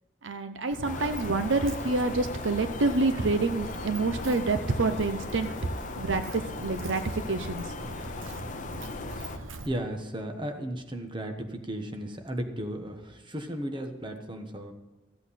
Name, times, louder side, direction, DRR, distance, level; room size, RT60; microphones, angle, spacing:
voice 1, 0.2-5.5 6.0-7.7, right 3 dB, 70° right, 9 dB, 0.7 m, -27 dB
Walk footsteps, 0.7-9.7, right 2 dB, 90° right, 1.0 m, -40 dB
sound 1, 0.8-9.4, left 4 dB, 40° left, 0.6 m, -39 dB
voice 2, 9.1-14.7, right 1 dB, 25° right, 5 dB, 1.2 m, -35 dB
14.5 x 8.2 x 4.2 m, 1.1 s
head